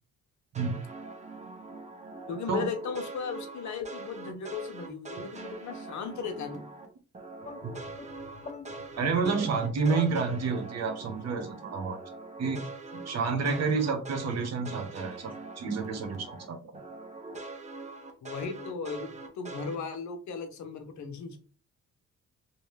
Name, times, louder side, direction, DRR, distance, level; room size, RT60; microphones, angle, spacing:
sound 1, 0.5-6.9 7.1-16.5 16.7-19.8, right 3 dB, 25° right, 1.0 m, -43 dB
voice 1, 2.3-6.6 13.3-13.6 18.2-21.4, left 5 dB, 70° left, 6 dB, 0.9 m, -37 dB
sound 2, 7.4-10.9, left 4 dB, 25° left, 0.4 m, -44 dB
voice 2, 9.0-12.0 12.4-12.6 13.1-15.3 15.6-16.7, right 4 dB, 60° right, 5 dB, 1.1 m, -29 dB
3.1 x 2.8 x 3.3 m, 0.37 s
cardioid pair, 90°, 30 cm